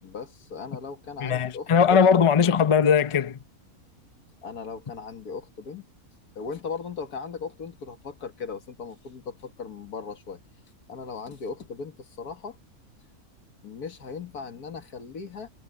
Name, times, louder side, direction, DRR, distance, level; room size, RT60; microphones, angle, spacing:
voice 1, 0.0-2.0 4.4-5.9 6.4-10.4 10.9-12.6 13.6-15.5, left 5 dB, 85° left, 2.2 m, -37 dB
voice 2, 1.2-3.4, left 6 dB, 35° left, 0.5 m, -20 dB
omnidirectional pair, 1.6 m